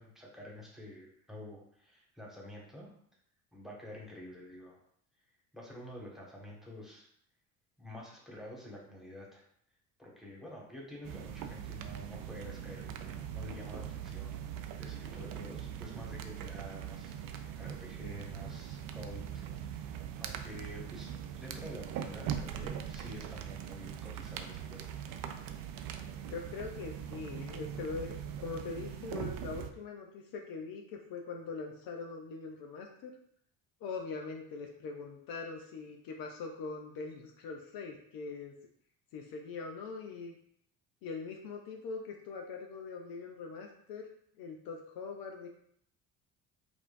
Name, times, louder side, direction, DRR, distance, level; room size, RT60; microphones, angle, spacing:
voice 1, 0.0-2.9 3.5-4.8 5.5-7.1 7.8-9.4 10.0-14.4 14.8-19.8 20.2-24.8, left 1 dB, ahead, -3 dB, 1.5 m, -49 dB
sound 1, 11.0-29.7, right 9 dB, 60° right, 0.5 m, -41 dB
voice 2, 26.3-33.1 33.8-38.5 39.1-40.4 41.0-44.1 44.4-45.5, left 4 dB, 60° left, 2 dB, 0.7 m, -42 dB
4.9 x 2.6 x 2.5 m, 0.66 s
hypercardioid pair, 65°, 39 cm